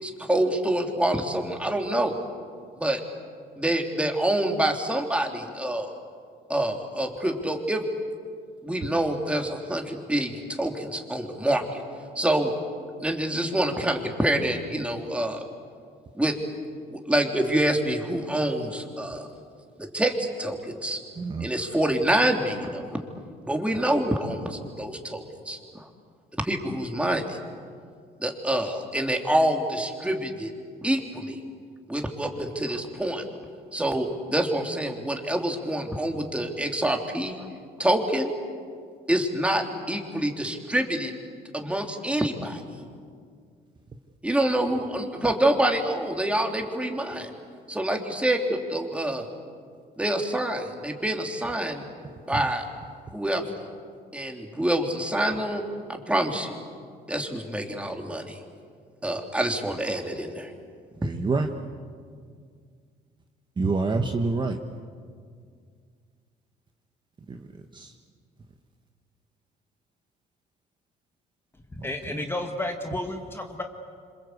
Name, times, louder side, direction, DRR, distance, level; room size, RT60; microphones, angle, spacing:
voice 1, 0.0-2.1 2.8-3.0 3.6-6.0 6.5-7.8 8.6-11.8 12.1-12.5 13.0-15.4 16.1-16.3 16.9-19.3 19.8-21.0 21.4-23.0 23.4-25.9 26.3-27.4 28.2-30.5 30.8-31.4 31.9-33.2 33.7-37.4 37.8-38.3 39.1-41.1 41.5-42.6 44.2-47.3 47.7-49.2 50.0-51.8 52.3-52.6 53.1-53.6 54.1-55.6 55.9-56.6 57.1-58.4 59.0-60.5, right 1 dB, 5° right, 2 dB, 3.3 m, -26 dB
voice 2, 21.2-21.5 61.0-61.5 63.6-64.6 67.3-67.5 67.7-67.9, right 3 dB, 25° right, 4 dB, 1.5 m, -26 dB
voice 3, 71.7-73.6, left 1 dB, 15° left, 3 dB, 1.8 m, -32 dB
27.5 x 26.5 x 8.2 m, 2.1 s
cardioid pair, 110°, 17 cm